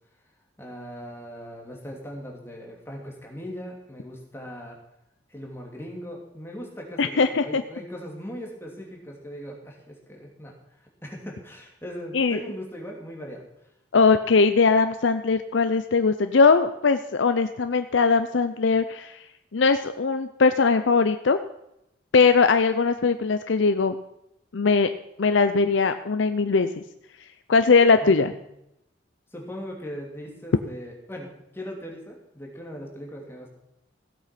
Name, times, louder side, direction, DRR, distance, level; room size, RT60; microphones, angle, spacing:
voice 1, 0.6-4.8 5.3-10.6 11.0-13.4 28.0-28.4 29.3-33.5, equal, 15° left, 0 dB, 2.7 m, -39 dB
voice 2, 7.0-7.6 12.1-12.4 13.9-19.2 19.5-21.4 22.1-24.0 24.5-24.9 25.2-26.7 27.5-28.3, left 4 dB, 80° left, 9 dB, 0.6 m, -20 dB
16.0 x 8.3 x 5.9 m, 0.82 s
head